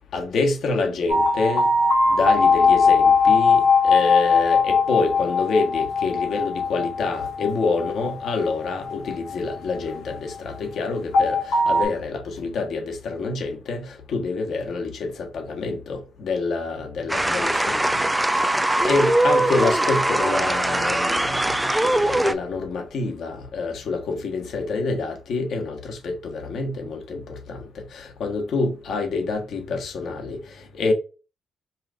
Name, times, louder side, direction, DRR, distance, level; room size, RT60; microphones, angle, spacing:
voice 1, 0.1-1.7 2.1-18.0 18.3-30.9, left 3 dB, 65° left, 1.3 m, -27 dB
sound 1, 1.1-10.2 11.1-11.9, left 4 dB, 85° left, 1.9 m, -20 dB
sound 2, 17.1-22.3, right 1 dB, 10° right, 0.4 m, -21 dB
5.6 x 2.5 x 2.6 m
cardioid pair, 90°, 0 cm